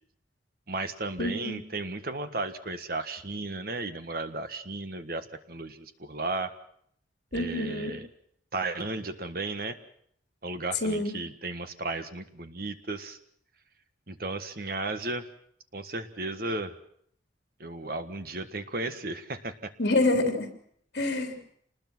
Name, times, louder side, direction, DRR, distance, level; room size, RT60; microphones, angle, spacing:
voice 1, 0.7-6.5 7.3-8.1 8.5-9.8 10.4-13.2 14.1-15.3 15.7-16.8 17.6-19.7, right 2 dB, 50° right, 9 dB, 1.6 m, -34 dB
voice 2, 1.2-1.6 7.3-8.0 10.8-11.2 19.8-20.5 20.9-21.4, left 2 dB, 65° left, 5 dB, 3.4 m, -27 dB
27.5 x 20.0 x 6.2 m, 0.66 s
head